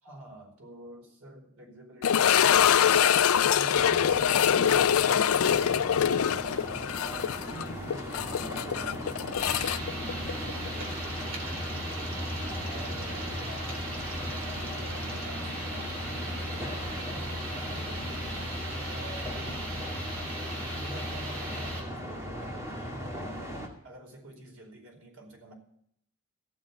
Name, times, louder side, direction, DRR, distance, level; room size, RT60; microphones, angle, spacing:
voice 1, 0.0-2.6 3.4-6.4 7.0-9.1 12.2-13.6 14.1-17.1 17.5-18.1 18.7-20.0 20.6-23.4 23.8-25.5, right 1 dB, 85° right, 2 dB, 4.7 m, -48 dB
sound 1, 2.0-10.9 11.2-11.3 11.9-12.0 14.6-14.7, left 8 dB, 75° left, 0.4 m, -24 dB
sound 2, 3.7-23.7, equal, 15° right, 2.2 m, -39 dB
sound 3, 9.4-21.8, equal, 60° right, 3.8 m, -37 dB
15.5 x 7.2 x 8.3 m, 0.70 s
head